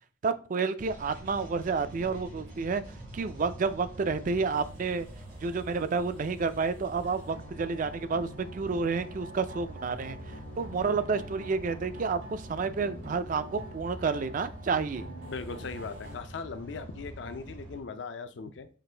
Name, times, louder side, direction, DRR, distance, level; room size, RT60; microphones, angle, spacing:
voice 1, 0.2-2.8 3.1-5.1 5.4-10.2 10.6-15.0, right 4 dB, 45° right, 0.3 m, -30 dB
sound 1, 0.8-17.8, right 1 dB, 85° right, 2.5 m, -45 dB
sound 2, 4.5-16.2, equal, 65° right, 1.4 m, -47 dB
voice 2, 15.3-18.7, left 4 dB, 65° left, 0.4 m, -39 dB
5.9 x 2.5 x 3.3 m
head